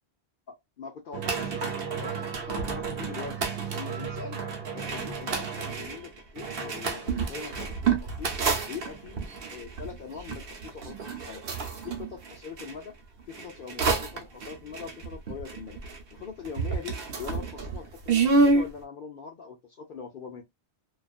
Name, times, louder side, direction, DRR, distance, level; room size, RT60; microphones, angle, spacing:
voice 1, 0.5-3.5 3.7-4.4 4.7-8.3 8.7-9.2 9.5-11.5 11.8-13.0 13.3-15.8 16.1-20.4, left 6 dB, 60° left, 0.7 m, -42 dB
sound 1, 1.1-12.7 13.3-16.2 16.4-18.7, right 4 dB, 65° right, 0.8 m, -29 dB
2.4 x 2.3 x 2.3 m
omnidirectional pair, 1.1 m